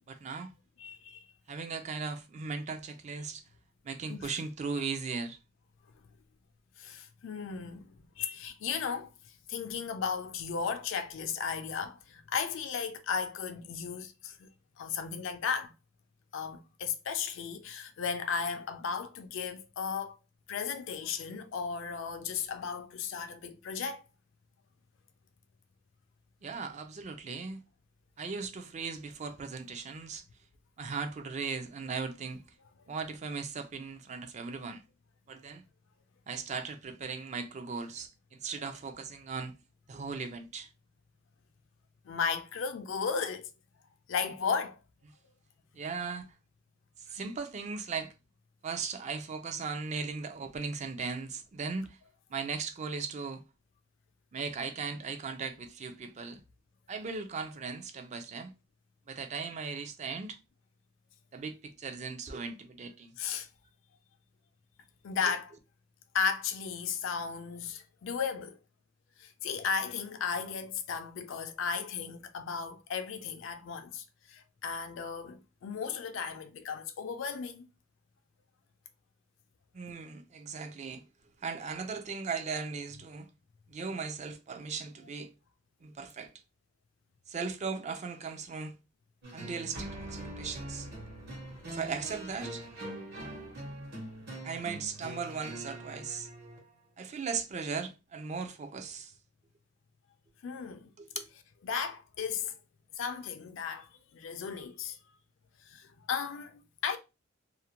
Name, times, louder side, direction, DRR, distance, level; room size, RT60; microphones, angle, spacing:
voice 1, 0.1-0.5 1.5-3.4 3.8-5.4 26.4-27.6 28.2-30.2 30.8-32.4 32.9-34.8 35.3-35.6 36.3-39.5 39.9-40.7 45.7-46.3 47.1-48.1 48.6-52.0 52.3-53.4 54.3-56.4 56.9-58.5 59.1-60.4 61.3-63.2 79.7-81.0 81.4-83.3 83.7-85.3 85.8-86.3 87.3-88.8 89.3-90.9 91.7-92.6 93.2-93.3 94.4-96.3 97.0-99.1 101.0-101.3, right 5 dB, 35° right, 0.4 m, -38 dB
voice 2, 0.8-1.2 4.1-4.3 6.8-9.1 9.5-14.5 14.8-15.7 16.3-20.2 20.5-24.0 42.1-43.5 44.1-44.8 47.2-47.3 63.2-63.5 65.0-65.5 66.1-68.6 69.2-77.7 100.4-100.9 101.6-102.6 103.0-105.0 105.7-107.0, left 6 dB, 70° left, 0.4 m, -35 dB
sound 1, 89.2-96.6, right 1 dB, 55° right, 1.0 m, -43 dB
2.4 x 2.1 x 2.9 m
head